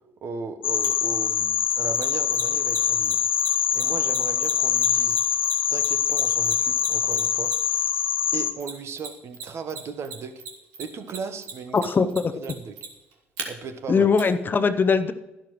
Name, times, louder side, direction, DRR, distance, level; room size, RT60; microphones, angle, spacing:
voice 1, 0.2-3.2 3.7-5.2 5.7-7.5 8.3-10.4 10.8-12.1 12.3-12.7 13.5-14.1, right 5 dB, 50° right, 8 dB, 1.0 m, -36 dB
sound 1, 0.6-8.5, left 9 dB, 85° left, 0.4 m, -24 dB
Mechanisms, 0.8-0.9 1.9-7.8 8.6-9.4 9.7-13.4 14.2-14.3, right 6 dB, 65° right, 1.8 m, -36 dB
voice 2, 11.7-12.3 13.9-15.1, left 5 dB, 35° left, 11 dB, 0.7 m, -21 dB
11.5 x 11.5 x 3.1 m, 0.98 s
hypercardioid pair, 55°, 6 cm